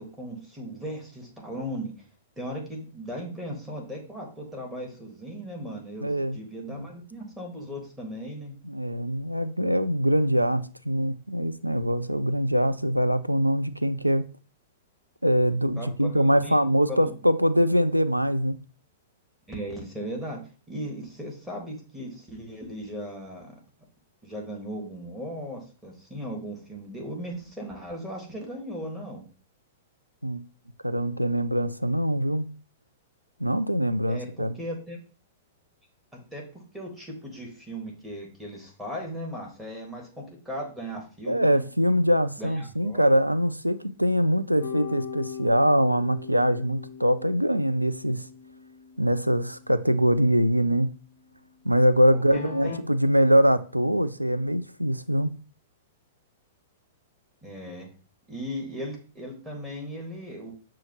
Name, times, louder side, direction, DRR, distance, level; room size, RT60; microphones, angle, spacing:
voice 1, 0.0-1.9 2.4-8.6 15.8-16.6 16.9-17.1 19.5-20.4 20.7-23.5 24.2-29.2 34.0-35.0 36.3-41.7 42.4-43.0 52.1-52.8 57.4-57.9 58.3-60.5, equal, 5° right, 1.4 m, -37 dB
voice 2, 6.0-6.4 6.7-6.8 8.6-14.3 15.2-18.6 30.2-30.4 30.8-32.5 33.4-34.6 41.3-48.3 49.0-50.9 51.6-55.3, equal, 90° right, 0.3 m, -23 dB
sound 1, 44.6-52.8, left 7 dB, 65° left, 0.4 m, -42 dB
6.3 x 2.4 x 2.9 m
figure-of-eight pair, 105°, 0 cm